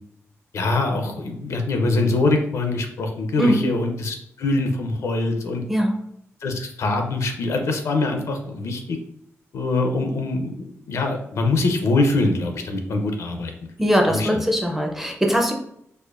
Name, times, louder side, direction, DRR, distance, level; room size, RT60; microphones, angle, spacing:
voice 1, 0.5-5.6 6.4-9.0 9.5-13.5 14.1-14.4, left 2 dB, 70° left, 4 dB, 0.6 m, -23 dB
voice 2, 13.8-15.5, equal, 5° right, 2 dB, 0.4 m, -20 dB
4.2 x 2.5 x 2.4 m, 0.73 s
wide cardioid pair, 170°, 5 cm